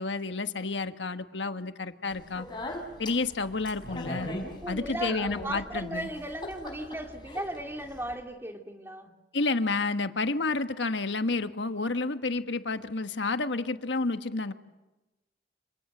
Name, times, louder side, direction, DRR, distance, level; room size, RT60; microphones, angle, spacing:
voice 1, 0.0-2.5 3.0-4.3 4.7-6.1 9.3-14.5, left 3 dB, 85° left, 9 dB, 1.4 m, -30 dB
Speech, 2.1-8.1, left 1 dB, 25° left, 5.0 m, -40 dB
voice 2, 4.6-9.1, right 1 dB, 15° right, 4 dB, 2.4 m, -36 dB
27.5 x 26.5 x 7.9 m, 1.0 s
head